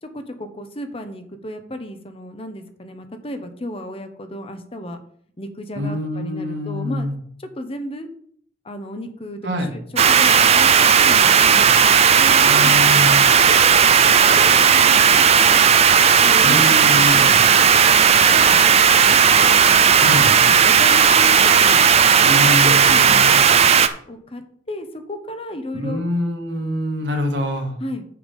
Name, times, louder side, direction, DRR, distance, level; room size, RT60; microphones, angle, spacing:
voice 1, 0.0-5.0 5.4-7.1 7.4-8.1 8.6-9.8 10.1-11.7 12.2-13.8 14.1-15.6 16.2-17.4 17.8-18.8 19.0-19.2 19.7-20.2 20.5-21.8 22.2-23.5 24.1-26.0 27.8-28.1, left 1 dB, 30° left, 7 dB, 0.9 m, -34 dB
voice 2, 5.8-7.2 9.4-9.7 12.5-13.2 16.4-17.4 20.0-20.3 22.3-23.4 25.7-27.7, left 1 dB, 70° right, 3 dB, 1.9 m, -25 dB
sound 1, 10.0-23.9, right 7 dB, 35° right, 0.5 m, -14 dB
7.1 x 6.8 x 5.3 m, 0.63 s
head